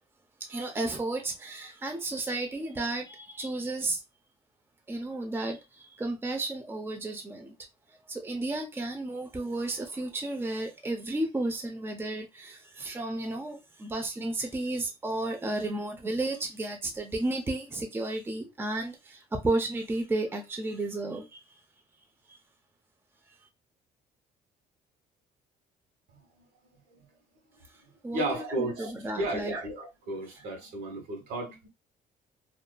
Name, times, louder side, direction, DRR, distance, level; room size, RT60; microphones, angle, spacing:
voice 1, 0.4-4.0 4.9-7.5 8.1-21.4 28.0-29.6, right 2 dB, 15° right, 0.6 m, -33 dB
voice 2, 28.1-31.7, right 1 dB, 75° right, 1.2 m, -34 dB
2.7 x 2.4 x 2.3 m
cardioid pair, 110°, 17 cm